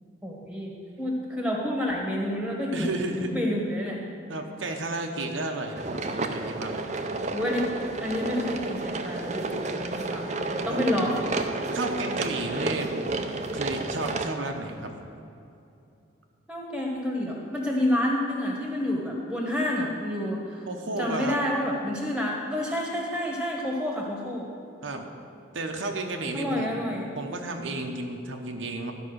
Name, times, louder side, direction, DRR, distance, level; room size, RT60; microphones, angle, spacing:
voice 1, 0.2-4.0 7.3-7.7 8.0-11.2 16.5-20.6 21.0-24.5 26.3-27.1, left 1 dB, 5° right, -1 dB, 1.4 m, -29 dB
voice 2, 2.7-3.3 4.3-6.9 10.7-10.8 11.7-12.9 13.5-14.9 20.7-21.4 24.8-25.0 25.5-26.7 27.2-28.9, right 2 dB, 80° right, 3 dB, 0.9 m, -32 dB
sound 1, 5.7-14.3, right 2 dB, 35° right, 0.5 m, -31 dB
12.5 x 5.5 x 6.3 m, 2.7 s
head